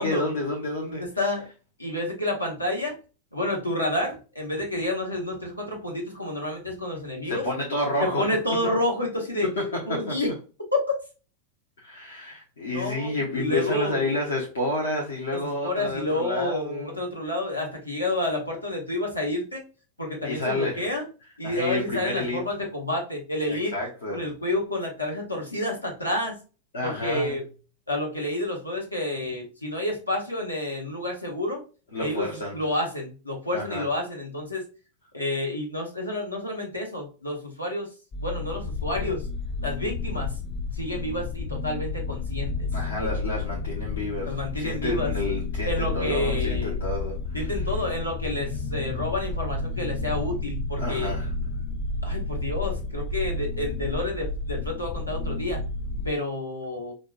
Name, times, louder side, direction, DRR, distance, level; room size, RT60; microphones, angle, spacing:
voice 1, 0.0-1.1 7.2-8.4 8.6-8.7 9.4-10.2 11.8-17.0 20.2-20.9 21.4-22.4 23.5-24.2 26.7-27.4 31.9-32.6 33.5-33.9 42.7-47.7 50.8-51.3, left 1 dB, 65° left, 0.8 m, -30 dB
voice 2, 1.8-2.9 3.3-7.4 8.2-9.5 9.9-10.3 12.7-14.1 15.6-19.6 20.0-21.0 21.4-23.7 24.1-26.4 26.8-27.4 27.9-31.6 32.0-32.3 32.5-34.6 35.1-37.9 38.2-39.2 39.6-40.3 40.7-42.7 44.3-45.1 45.7-46.8 47.3-51.1 52.0-55.6 56.0-56.9, left 1 dB, 85° left, 1.1 m, -29 dB
sound 1, 38.1-56.1, left 3 dB, 30° left, 0.3 m, -31 dB
4.9 x 2.1 x 2.4 m
figure-of-eight pair, 90°, 0 cm